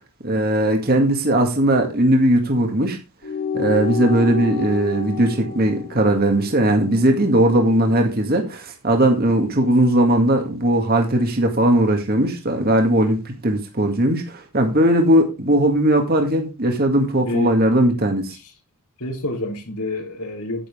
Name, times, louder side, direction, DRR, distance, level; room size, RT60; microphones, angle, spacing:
voice 1, 0.2-3.0 3.5-18.4, right 1 dB, 45° right, 2.0 m, -18 dB
sound 1, 3.2-8.0, left 7 dB, 70° left, 4.3 m, -30 dB
voice 2, 17.2-17.5 18.3-18.5 19.0-20.7, left 1 dB, 85° left, 3.6 m, -28 dB
10.0 x 9.3 x 3.6 m
head